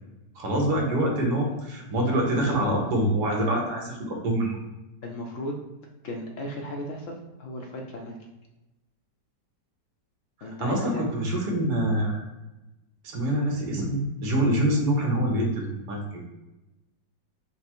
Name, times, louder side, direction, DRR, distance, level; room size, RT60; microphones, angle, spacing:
voice 1, 0.3-4.6 10.6-12.3 13.0-16.2, right 1 dB, 70° right, 0 dB, 1.6 m, -25 dB
voice 2, 2.1-2.5 5.0-5.6 6.0-8.2 10.4-11.2, left 1 dB, 65° left, 1 dB, 0.8 m, -36 dB
5.7 x 2.0 x 4.3 m, 1.0 s
omnidirectional pair, 1.9 m